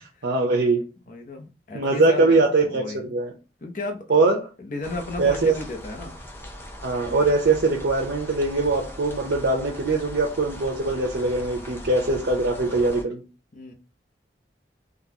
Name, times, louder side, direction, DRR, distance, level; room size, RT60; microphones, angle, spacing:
voice 1, 0.2-0.8 1.7-3.3 4.1-4.4 5.2-5.5 6.8-13.2, right 3 dB, 80° right, -1 dB, 0.7 m, -22 dB
voice 2, 1.1-3.2 3.6-4.1 4.6-6.2 13.5-13.7, left 2 dB, 45° left, 3 dB, 0.7 m, -34 dB
sound 1, 4.8-13.0, left 1 dB, 15° left, 0.5 m, -40 dB
3.9 x 2.3 x 2.8 m, 0.31 s
head